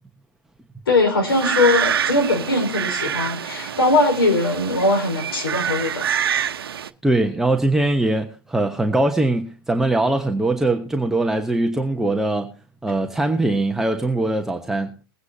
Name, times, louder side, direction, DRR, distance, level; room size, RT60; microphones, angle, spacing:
voice 1, 0.9-6.1, left 2 dB, 85° left, 4.9 m, -20 dB
sound 1, 1.3-6.9, right 8 dB, 85° right, 0.9 m, -26 dB
voice 2, 7.0-12.5 12.8-15.0, right 2 dB, 5° right, 1.1 m, -21 dB
21.5 x 9.5 x 2.8 m
hypercardioid pair, 110°, 12 cm